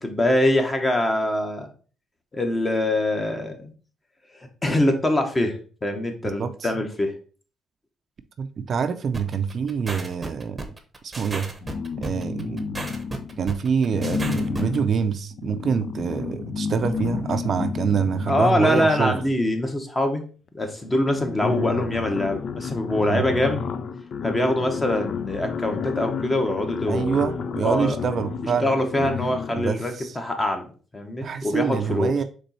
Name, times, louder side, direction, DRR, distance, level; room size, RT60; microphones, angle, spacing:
voice 1, 0.0-1.7 2.3-3.7 4.6-7.1 18.3-20.2 20.5-23.6 24.2-27.3 27.6-28.0 28.6-32.1, left 1 dB, 20° left, 1.0 m, -24 dB
voice 2, 8.4-10.6 11.0-11.5 12.0-12.7 13.4-19.2 23.0-23.2 26.9-28.7 29.5-30.2 31.2-32.2, right 6 dB, 55° right, 0.4 m, -25 dB
sound 1, 9.1-14.8, right 2 dB, 20° right, 0.8 m, -34 dB
sound 2, 11.6-13.4 13.9-19.5 20.5-20.6 20.8-29.7, left 6 dB, 55° left, 0.3 m, -31 dB
4.3 x 3.1 x 4.0 m
cardioid pair, 90°, 0 cm